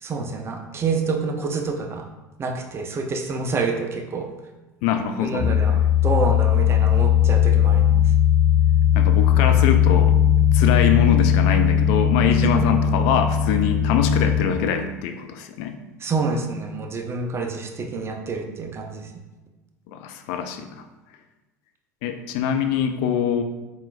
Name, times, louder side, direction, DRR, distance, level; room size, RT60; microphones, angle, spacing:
voice 1, 0.0-2.1 2.4-4.3 5.2-8.0 12.5-12.6 16.0-19.1, right 4 dB, 30° right, 3 dB, 0.6 m, -27 dB
voice 2, 4.8-5.5 8.9-10.2 10.5-15.8 19.9-20.8 22.0-23.4, left 8 dB, 55° left, 6 dB, 0.3 m, -23 dB
sound 1, 5.4-14.4, left 9 dB, 75° left, 0.8 m, -18 dB
4.3 x 3.7 x 2.3 m, 1.1 s
figure-of-eight pair, 65°, 9 cm